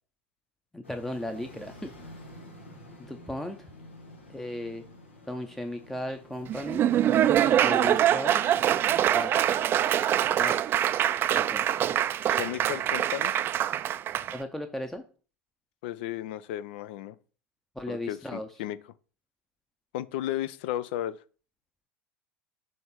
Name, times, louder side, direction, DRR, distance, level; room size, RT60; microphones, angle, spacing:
voice 1, 0.7-1.9 3.0-3.7 4.3-4.8 5.3-6.9 7.6-8.6 9.1-9.3 10.4-10.6 11.3-12.1 14.3-15.0 17.8-18.5, left 1 dB, 5° left, 0.7 m, -36 dB
sound 1, 0.8-6.7, left 1 dB, 80° left, 1.2 m, -49 dB
Laughter / Applause, 6.5-14.4, right 11 dB, 35° right, 0.4 m, -24 dB
voice 2, 12.3-13.3 15.8-17.2 17.9-18.8 19.9-21.2, left 13 dB, 60° left, 0.5 m, -34 dB
6.5 x 3.3 x 5.7 m
figure-of-eight pair, 75°, 6 cm